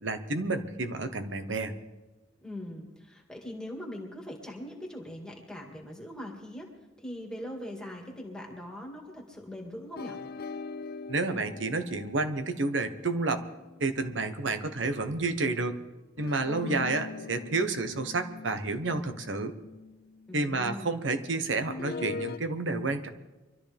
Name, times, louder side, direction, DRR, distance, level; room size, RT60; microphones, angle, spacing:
voice 1, 0.0-1.7 11.1-13.4 13.8-15.8 16.2-19.6 20.3-23.1, right 3 dB, 75° right, 8 dB, 1.1 m, -30 dB
voice 2, 2.4-6.7 7.0-10.2 16.5-16.7 20.3-21.1, left 1 dB, 5° left, -1 dB, 2.1 m, -41 dB
sound 1, 10.0-14.5 16.2-20.3 21.7-22.4, left 4 dB, 55° left, 0.4 m, -42 dB
24.0 x 13.0 x 3.5 m, 1.1 s
head